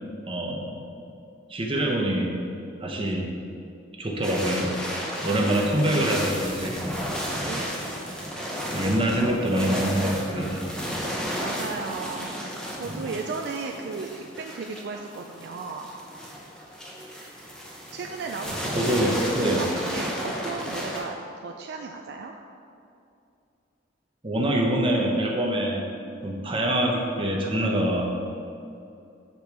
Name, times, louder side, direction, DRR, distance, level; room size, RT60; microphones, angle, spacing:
voice 1, 0.3-0.8 1.5-2.3 2.8-3.3 4.0-4.7 5.2-6.8 8.7-10.7 12.9-13.0 18.7-19.6 24.2-25.9 26.2-28.0, right 1 dB, 25° right, -1 dB, 0.8 m, -25 dB
sound 1, 4.2-21.0, equal, 5° left, 0.7 m, -33 dB
voice 2, 5.3-5.7 7.4-7.8 11.4-12.3 12.8-15.9 17.9-19.0 19.4-22.3, right 4 dB, 55° right, 3 dB, 0.3 m, -35 dB
6.8 x 4.3 x 4.6 m, 2.6 s
head